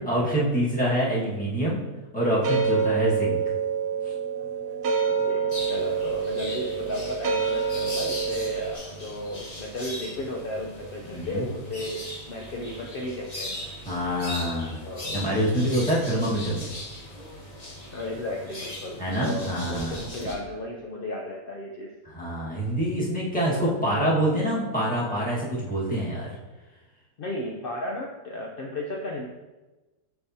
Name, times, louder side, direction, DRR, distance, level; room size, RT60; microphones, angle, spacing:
voice 1, 0.1-1.8 2.1-3.4 4.0-4.1 11.1-11.5 13.8-14.8 15.1-16.7 19.0-19.9 22.0-26.3, right 1 dB, 5° left, -6 dB, 1.4 m, -26 dB
sound 1, 2.2-8.7, right 6 dB, 70° right, 1.2 m, -27 dB
voice 2, 5.1-13.6 14.8-15.2 16.0-16.1 17.9-21.9 23.5-23.7 27.2-29.3, left 1 dB, 60° left, -1 dB, 0.5 m, -34 dB
sound 2, 5.5-20.3, left 1 dB, 30° left, 1.0 m, -39 dB
6.8 x 5.9 x 2.7 m, 1.1 s
omnidirectional pair, 1.7 m